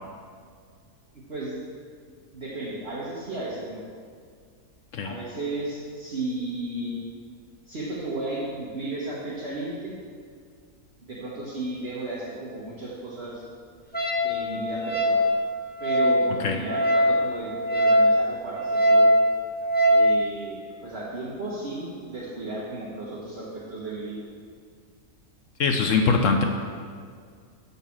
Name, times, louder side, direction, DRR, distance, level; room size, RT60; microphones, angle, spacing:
voice 1, 1.1-1.6 2.3-3.8 5.0-7.0 7.7-9.9 11.0-13.4 14.2-15.2 15.8-19.1 19.9-24.2, right 2 dB, 45° right, -7 dB, 1.5 m, -34 dB
Wind instrument woodwind instrument, 13.9-20.1, equal, 10° left, 0.8 m, -22 dB
voice 2, 25.6-26.4, left 4 dB, 65° left, 3 dB, 1.0 m, -22 dB
12.0 x 4.1 x 7.1 m, 2.1 s
omnidirectional pair, 1.6 m